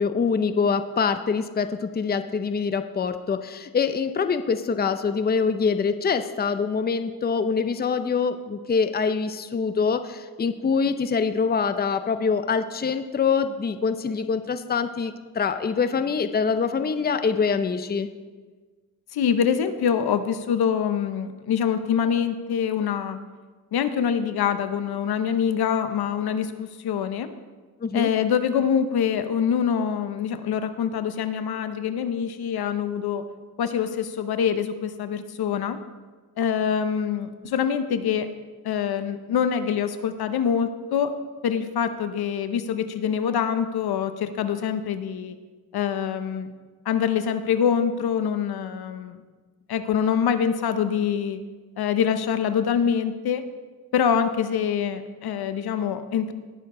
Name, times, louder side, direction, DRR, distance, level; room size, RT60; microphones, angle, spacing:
voice 1, 0.0-18.1 27.8-28.1, left 5 dB, 25° left, 10 dB, 0.6 m, -24 dB
voice 2, 19.1-23.2 23.7-27.3 27.9-33.3 33.6-35.8 36.4-38.3 38.6-41.2 41.4-45.4 45.7-46.5 46.9-49.2 49.7-51.4 51.8-53.4 53.9-56.3, left 8 dB, 80° left, 10 dB, 0.8 m, -25 dB
19.0 x 6.7 x 3.8 m, 1.4 s
cardioid pair, 95°, 37 cm